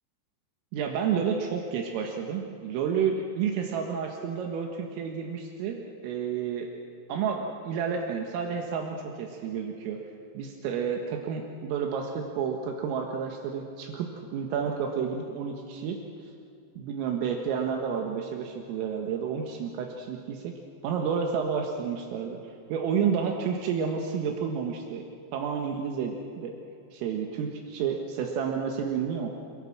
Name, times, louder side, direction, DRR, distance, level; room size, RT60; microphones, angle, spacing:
voice 1, 0.7-6.7 7.1-10.0 10.4-16.0 16.8-20.5 20.8-25.0 25.3-26.5 26.9-29.3, right 6 dB, 80° right, 2 dB, 4.2 m, -30 dB
30.0 x 22.0 x 6.3 m, 2.5 s
omnidirectional pair, 5.9 m